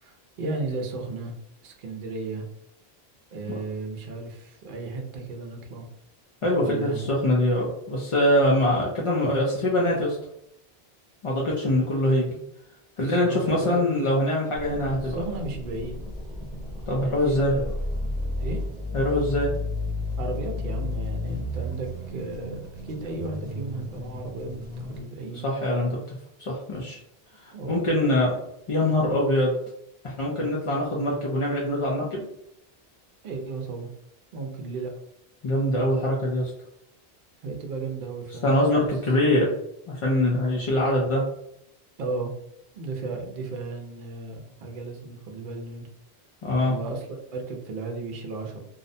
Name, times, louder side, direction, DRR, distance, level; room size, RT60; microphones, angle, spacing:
voice 1, 0.0-1.3 1.6-2.5 3.3-5.9 6.6-7.1 13.0-13.8 15.0-16.0 16.9-17.8 18.4-18.6 20.2-25.5 27.5-27.9 33.2-33.9 34.3-34.9 37.4-38.9 42.0-42.3 42.7-45.9 46.7-48.6, right 3 dB, 60° right, 2 dB, 0.7 m, -34 dB
voice 2, 6.4-10.2 11.2-12.4 13.0-15.2 16.9-17.5 18.9-19.5 25.4-26.0 26.4-27.0 27.4-28.3 28.7-29.6 30.0-32.2 35.4-36.5 38.4-39.5 39.9-41.2 46.4-46.8, left 1 dB, 50° left, -4 dB, 0.3 m, -23 dB
sound 1, 14.5-25.0, left 2 dB, 5° right, 0.9 m, -33 dB
2.5 x 2.1 x 2.6 m, 0.75 s
omnidirectional pair, 1.1 m